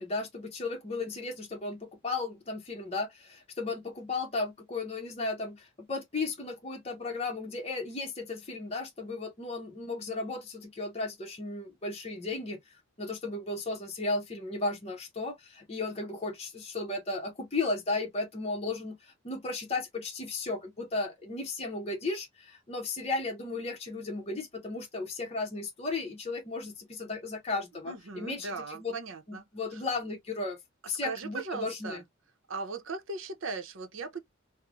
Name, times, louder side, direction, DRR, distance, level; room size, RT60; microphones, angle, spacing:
voice 1, 0.0-28.9 29.3-30.6 30.9-32.0, left 3 dB, 30° left, 0.6 m, -35 dB
voice 2, 27.8-29.4 29.7-29.8 30.8-32.0 32.5-34.2, right 4 dB, 75° right, 0.6 m, -38 dB
3.1 x 2.0 x 2.3 m
head